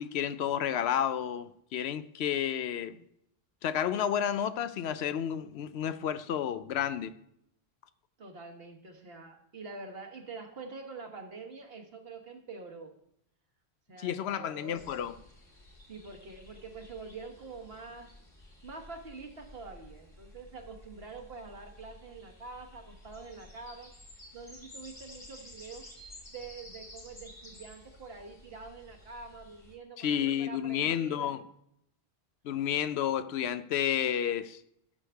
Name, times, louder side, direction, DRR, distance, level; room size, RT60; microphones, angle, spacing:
voice 1, 0.0-3.0 3.6-7.1 14.0-15.1 30.0-31.4 32.4-34.6, left 9 dB, 85° left, 0.8 m, -31 dB
voice 2, 8.2-12.9 13.9-14.8 15.9-18.1 18.6-23.9 24.3-25.8 26.3-31.3, right 4 dB, 70° right, 1.5 m, -46 dB
sound 1, 14.7-29.7, left 1 dB, 45° left, 2.3 m, -53 dB
13.0 x 6.4 x 3.4 m
omnidirectional pair, 1.1 m